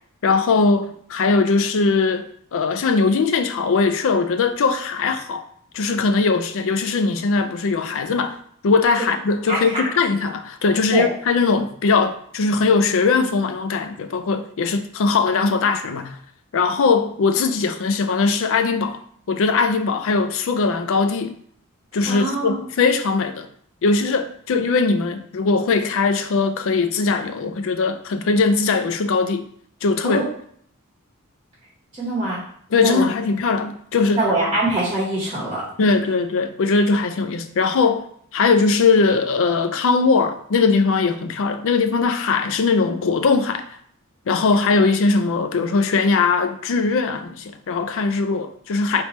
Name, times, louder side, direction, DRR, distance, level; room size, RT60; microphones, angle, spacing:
voice 1, 0.2-5.5 5.7-8.4 8.6-16.2 16.5-19.0 19.3-21.4 21.9-23.5 23.8-29.5 29.8-30.2 32.7-34.6 35.8-38.1 38.3-43.6 44.3-49.0, left 4 dB, 65° left, 0.4 m, -20 dB
voice 2, 22.1-22.5 30.0-30.2 32.0-32.4 32.8-33.1 34.2-35.6, right 2 dB, 25° right, 1.1 m, -23 dB
3.3 x 3.0 x 4.3 m
head